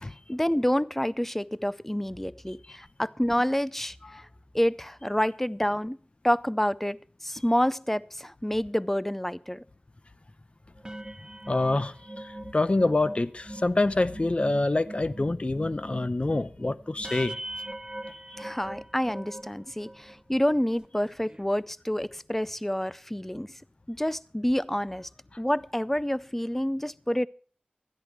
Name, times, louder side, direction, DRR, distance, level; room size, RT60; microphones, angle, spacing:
voice 1, 0.3-4.2 4.5-6.0 6.2-9.6 18.4-23.5 23.9-25.1 25.4-27.3, equal, 10° left, 0.4 m, -28 dB
sound 1, 10.7-20.2 20.7-20.8 21.1-21.4, right 1 dB, 25° right, 0.7 m, -41 dB
voice 2, 11.5-17.4, left 2 dB, 40° left, 0.7 m, -26 dB
13.0 x 10.5 x 4.5 m
wide cardioid pair, 60°, 3 cm